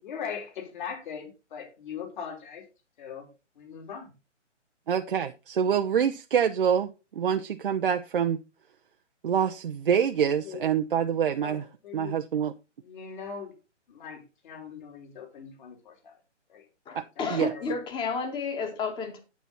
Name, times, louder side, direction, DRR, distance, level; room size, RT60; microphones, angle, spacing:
voice 1, 0.0-2.6 3.0-3.3 3.6-4.1 10.4-10.6 11.4-12.1 12.8-13.5 13.9-16.2 16.5-16.6 17.2-17.8, left 7 dB, 40° left, 3.7 m, -40 dB
voice 2, 4.9-8.4 9.2-11.6 11.9-12.5 16.9-17.0 17.3-17.5, right 8 dB, 45° right, 0.7 m, -26 dB
voice 3, 16.8-19.2, left 4 dB, 15° left, 1.7 m, -31 dB
9.3 x 8.1 x 4.1 m
figure-of-eight pair, 140°, 36 cm